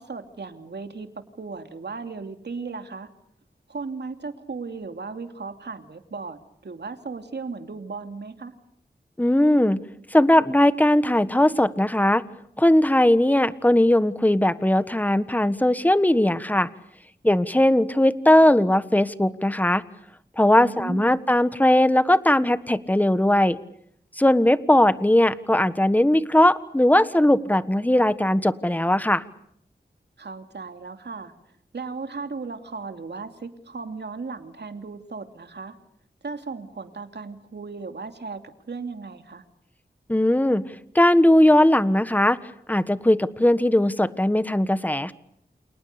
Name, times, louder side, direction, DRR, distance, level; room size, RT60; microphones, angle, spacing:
voice 1, 0.0-3.1 3.7-8.5 20.6-21.1 30.2-31.3 31.7-35.8 36.2-38.4 38.7-39.4, right 4 dB, 85° right, 7 dB, 2.8 m, -36 dB
voice 2, 9.2-9.8 10.1-12.2 12.6-16.7 17.2-19.8 20.4-23.6 24.2-29.2 40.1-40.6 40.9-42.4 42.7-45.1, left 1 dB, 10° left, 13 dB, 1.4 m, -19 dB
29.5 x 28.0 x 6.8 m, 0.72 s
wide cardioid pair, 85°, 17 cm